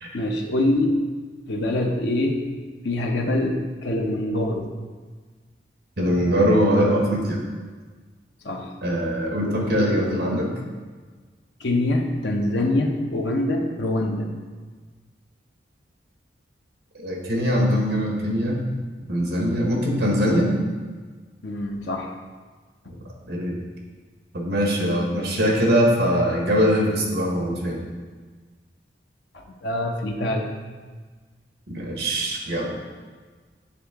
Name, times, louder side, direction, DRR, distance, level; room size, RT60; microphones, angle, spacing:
voice 1, 0.1-1.0 1.5-2.5 2.8-4.7 8.4-8.7 9.4-10.1 11.6-14.3 21.4-22.1 29.3-30.4, left 1 dB, 80° left, 2 dB, 0.7 m, -24 dB
voice 2, 6.0-7.4 8.8-10.5 17.0-18.6 19.1-20.5 22.9-23.0 23.3-23.6 24.3-27.8 31.7-32.8, equal, 65° right, -1 dB, 1.2 m, -22 dB
8.2 x 3.6 x 3.6 m, 1.4 s
head